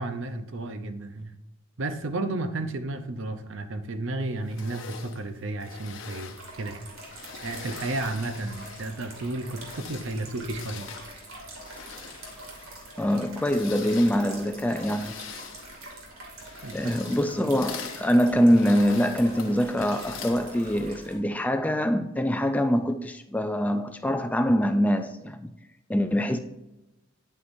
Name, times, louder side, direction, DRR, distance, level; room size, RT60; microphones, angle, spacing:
voice 1, 0.0-1.3 1.8-6.9 7.4-10.9 16.6-16.9, right 2 dB, 60° right, 0.7 m, -32 dB
sound 1, 4.4-9.0 9.5-21.0, left 6 dB, 65° left, 0.9 m, -44 dB
sound 2, 6.3-21.2, right 2 dB, 80° right, 2.5 m, -45 dB
voice 2, 13.0-15.2 16.7-25.5 25.9-26.4, equal, 5° left, 0.3 m, -24 dB
9.7 x 8.3 x 2.6 m
head